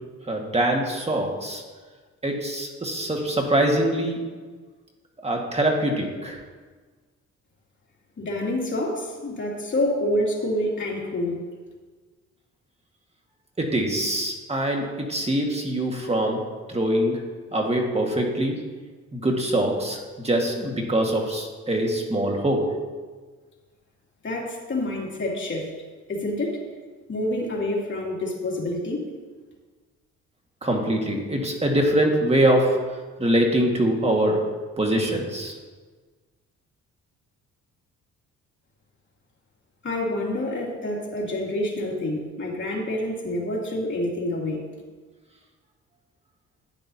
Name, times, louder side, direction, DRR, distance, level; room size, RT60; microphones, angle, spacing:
voice 1, 0.3-1.6 2.2-4.2 5.2-6.4 13.6-16.4 16.7-17.2 17.5-18.6 19.1-22.7 30.6-32.8 33.2-34.4 34.8-35.5, right 1 dB, 20° right, 1 dB, 1.8 m, -23 dB
voice 2, 8.2-11.4 24.2-25.7 26.1-26.6 27.1-29.1 39.8-44.7, left 1 dB, 40° left, -3 dB, 2.8 m, -27 dB
12.0 x 9.7 x 2.8 m, 1.4 s
cardioid pair, 90°, 30 cm